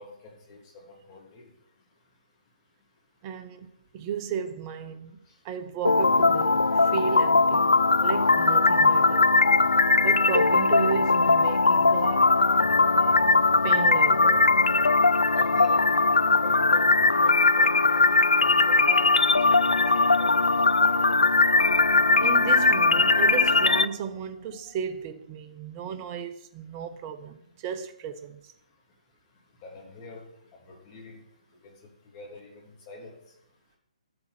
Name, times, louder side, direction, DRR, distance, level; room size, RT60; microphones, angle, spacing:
voice 1, 0.0-1.5 5.3-5.4 15.3-15.8 16.4-18.0 18.4-19.1 19.4-20.3 29.6-30.3 30.6-31.2 31.6-33.1, left 3 dB, 30° left, 3.2 m, -45 dB
voice 2, 3.2-3.7 3.9-5.2 5.4-7.7 8.0-9.3 10.0-12.2 13.6-14.5 22.2-28.4, right 7 dB, 25° right, 0.8 m, -34 dB
sound 1, 5.8-23.8, left 3 dB, 85° left, 0.4 m, -20 dB
sound 2, 8.6-25.0, right 2 dB, 55° right, 3.5 m, -46 dB
12.0 x 7.6 x 4.5 m
figure-of-eight pair, 140°, 4 cm